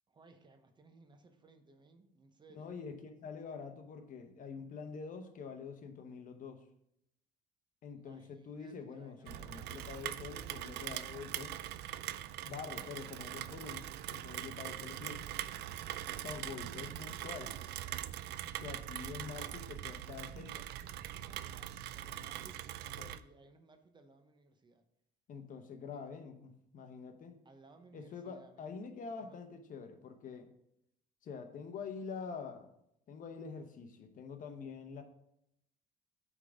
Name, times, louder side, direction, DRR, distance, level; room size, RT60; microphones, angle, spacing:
voice 1, 0.1-2.8 7.9-10.6 15.7-18.2 21.2-24.8 25.9-26.0 27.4-28.8 29.2-29.4 34.4-34.7, right 3 dB, 25° right, 7 dB, 0.8 m, -62 dB
voice 2, 2.5-6.6 7.8-11.6 12.4-15.3 16.2-17.6 18.6-20.6 23.0-23.1 25.3-27.4 27.9-30.5 31.2-32.7 33.1-35.0, left 5 dB, 50° left, 7 dB, 0.9 m, -46 dB
Rain, 9.3-23.2, right 12 dB, 75° right, 0.4 m, -42 dB
8.2 x 3.7 x 5.1 m, 0.77 s
cardioid pair, 110°, 17 cm